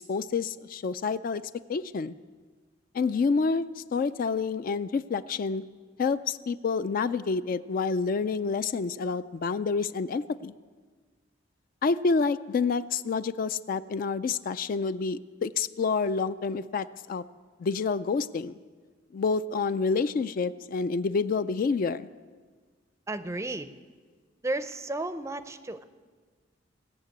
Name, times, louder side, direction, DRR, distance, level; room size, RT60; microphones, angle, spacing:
voice 1, 0.0-1.4 1.7-2.2 2.9-5.6 6.0-10.5 11.8-17.2 17.6-18.6 19.1-22.1, left 4 dB, 45° left, 13 dB, 0.3 m, -28 dB
voice 2, 23.1-23.7 24.4-25.8, right 2 dB, 15° right, 12 dB, 0.5 m, -33 dB
18.0 x 6.7 x 8.3 m, 1.5 s
head